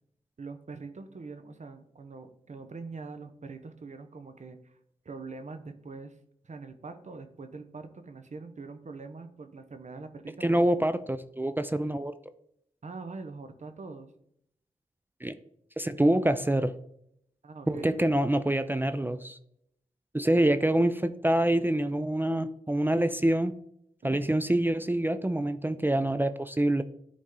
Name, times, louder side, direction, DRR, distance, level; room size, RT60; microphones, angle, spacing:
voice 1, 0.4-4.8 5.0-6.2 6.4-10.7 12.8-14.1 17.4-18.2 24.0-24.2, right 4 dB, 50° right, 8 dB, 0.8 m, -43 dB
voice 2, 10.4-12.1 15.2-15.3 15.8-16.7 17.7-19.4 20.1-23.5 24.0-26.8, right 1 dB, 15° right, 12 dB, 0.4 m, -26 dB
10.5 x 4.1 x 3.7 m, 0.72 s
cardioid pair, 60°, 15 cm